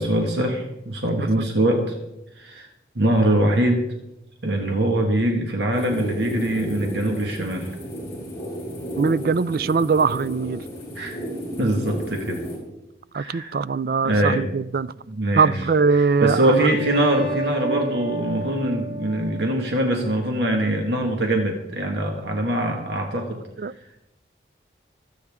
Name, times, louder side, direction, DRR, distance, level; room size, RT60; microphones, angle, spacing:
voice 1, 0.0-2.0 2.4-2.7 3.0-3.9 4.4-7.7 11.0-11.2 11.6-12.4 13.1-13.6 14.0-14.4 15.1-15.6 15.9-23.4, right 1 dB, 70° right, 1.8 m, -23 dB
sound 1, 5.7-12.6, equal, 15° left, 6.3 m, -33 dB
voice 2, 9.0-10.6 13.1-14.9 15.4-16.7 23.6-23.7, right 5 dB, 50° right, 0.4 m, -21 dB
sound 2, 16.0-21.1, right 3 dB, 35° right, 4.6 m, -32 dB
25.5 x 9.2 x 3.6 m
head